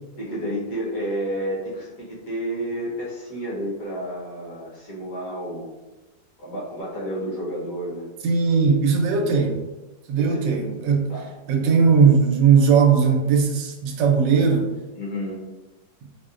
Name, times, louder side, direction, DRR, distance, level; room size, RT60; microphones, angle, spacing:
voice 1, 0.2-5.7 6.4-8.1 10.2-10.7 11.1-11.3 14.9-15.4, equal, 55° left, -7 dB, 1.4 m, -30 dB
voice 2, 8.2-9.6 10.1-11.1 11.5-14.7, right 5 dB, 85° right, 2 dB, 1.3 m, -18 dB
4.2 x 2.1 x 2.4 m, 1.1 s
omnidirectional pair, 1.9 m